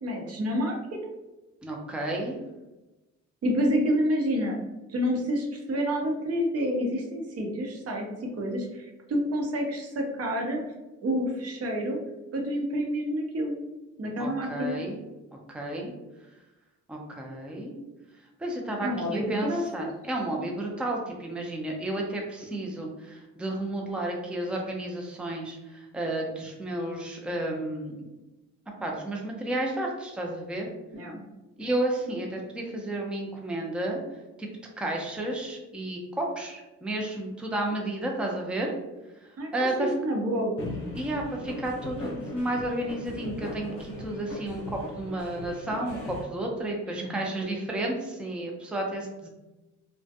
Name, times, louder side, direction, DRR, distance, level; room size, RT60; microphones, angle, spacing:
voice 1, 0.0-1.2 3.4-4.6 4.9-10.6 11.0-12.0 12.3-13.5 14.0-14.8 18.8-19.9 30.9-31.2 39.4-39.5 39.8-40.5 47.0-47.1 47.4-47.5, equal, 50° right, 1 dB, 0.7 m, -28 dB
voice 2, 1.6-2.4 14.2-15.0 15.5-15.9 16.9-17.7 18.4-28.1 28.8-30.7 31.6-34.0 34.4-34.5 34.8-38.7 39.5-39.9 41.0-49.3, right 1 dB, 5° right, 0 dB, 0.4 m, -32 dB
sound 1, 40.6-46.2, left 2 dB, 50° left, 0.8 m, -39 dB
2.4 x 2.2 x 2.6 m, 1.1 s
cardioid pair, 90°, 30 cm